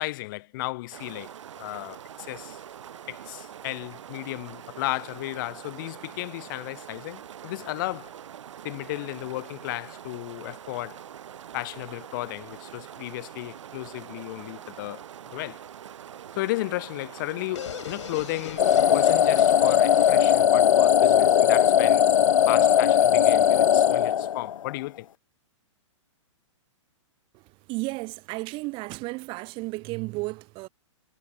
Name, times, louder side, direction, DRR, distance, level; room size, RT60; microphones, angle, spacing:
voice 1, 0.0-2.6 3.1-8.1 8.6-11.0 11.5-15.0 15.3-15.6 16.3-22.1 22.5-25.1, left 20 dB, 40° left, 0.7 m, -34 dB
sound 1, 0.9-20.5, right 9 dB, 70° right, 4.3 m, -44 dB
sound 2, 17.6-21.3, left 11 dB, 65° left, 2.4 m, -40 dB
sound 3, 18.6-24.7, left 9 dB, 90° left, 0.5 m, -19 dB
voice 2, 27.7-30.7, right 24 dB, 30° right, 1.9 m, -33 dB
hypercardioid pair, 145°, 16 cm